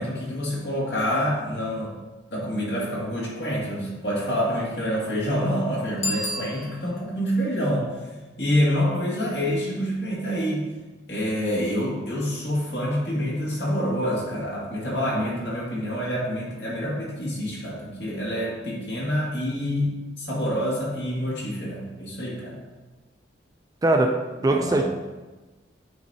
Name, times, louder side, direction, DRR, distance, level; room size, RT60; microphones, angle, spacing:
voice 1, 0.0-1.9 2.3-7.9 8.4-10.7 11.1-22.6 24.4-24.8, equal, 60° left, -5 dB, 2.0 m, -27 dB
Bicycle bell, 5.9-7.2, left 1 dB, 85° left, 1.4 m, -32 dB
voice 2, 23.8-24.1 24.4-24.8, right 2 dB, 20° right, 3 dB, 0.3 m, -20 dB
9.2 x 4.1 x 2.7 m, 1.2 s
head